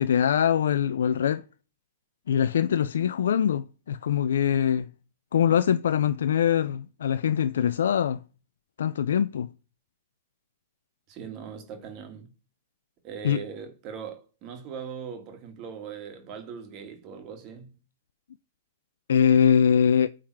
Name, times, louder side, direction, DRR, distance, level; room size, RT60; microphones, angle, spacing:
voice 1, 0.0-1.4 2.3-4.9 5.3-8.2 8.8-9.5 13.2-13.4 19.1-20.1, left 8 dB, 80° left, 0.3 m, -23 dB
voice 2, 11.1-12.3 13.0-17.7, right 7 dB, 35° right, 1.8 m, -40 dB
8.6 x 3.7 x 4.6 m
hypercardioid pair, 140°, 0 cm